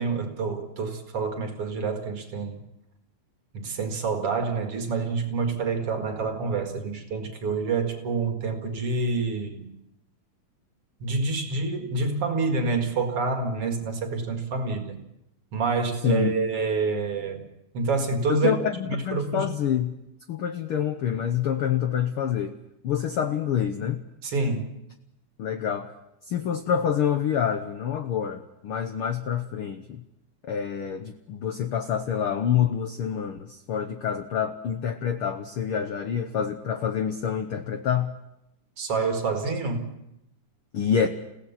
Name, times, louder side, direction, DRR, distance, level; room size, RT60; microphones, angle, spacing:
voice 1, 0.0-2.6 3.5-9.7 11.0-15.0 15.5-17.4 17.7-19.5 24.2-24.7 38.8-39.9, right 4 dB, 50° right, 2.7 m, -27 dB
voice 2, 18.3-19.9 20.3-22.5 22.8-24.0 25.4-25.9 26.3-30.0 30.4-38.1 40.7-41.1, left 8 dB, 75° left, 1.2 m, -27 dB
30.0 x 17.0 x 5.8 m
omnidirectional pair, 3.8 m